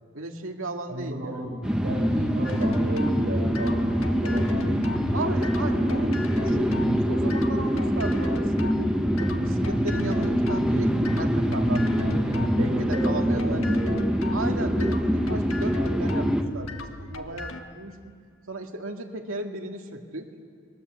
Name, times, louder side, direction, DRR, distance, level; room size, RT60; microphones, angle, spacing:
voice 1, 0.1-1.4 5.1-6.7 7.1-8.9 9.2-12.1 12.6-13.7 14.3-16.3 16.5-18.1 18.5-20.3, right 2 dB, 70° right, 3 dB, 2.3 m, -35 dB
voice 2, 0.9-1.5 1.8-4.6 12.2-13.9, right 1 dB, 55° right, -7 dB, 7.4 m, -34 dB
sound 1, 1.6-16.4, equal, 5° right, 1.4 m, -24 dB
sound 2, 2.4-17.6, left 3 dB, 80° left, 1.7 m, -39 dB
29.0 x 22.5 x 8.2 m, 2.2 s
head